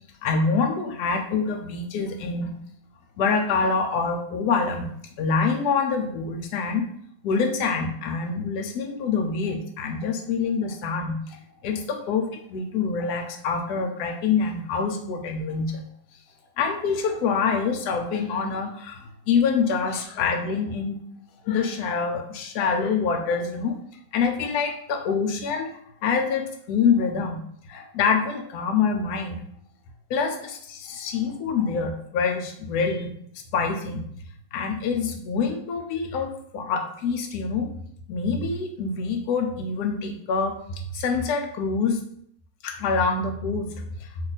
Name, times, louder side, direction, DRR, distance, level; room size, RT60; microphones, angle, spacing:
voice 1, 0.2-2.5 3.2-6.9 7.2-11.4 11.6-15.9 16.6-21.1 21.5-23.8 24.1-27.4 27.7-29.4 30.1-33.1 33.5-34.0 34.5-37.7 38.1-40.6 40.9-42.0 42.6-43.7 44.0-44.1, left 5 dB, 75° left, 4 dB, 1.1 m, -26 dB
2.8 x 2.4 x 4.0 m, 0.69 s
omnidirectional pair, 1.7 m